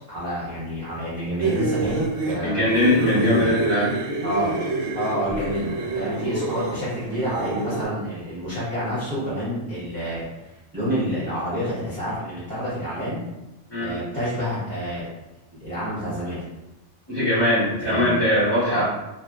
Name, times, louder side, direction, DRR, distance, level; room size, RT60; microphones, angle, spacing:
voice 1, 0.1-2.6 2.9-3.5 4.2-4.6 4.9-10.3 10.7-13.2 13.8-15.1 15.5-16.4 17.9-18.2 18.7-18.8, equal, 20° right, -13 dB, 1.0 m, -28 dB
sound 1, 1.4-7.8, right 3 dB, 85° right, 1.0 m, -28 dB
voice 2, 2.4-3.9 13.7-13.9 17.1-18.8, left 1 dB, 20° left, -12 dB, 1.2 m, -21 dB
2.7 x 2.5 x 2.3 m, 0.99 s
omnidirectional pair, 1.2 m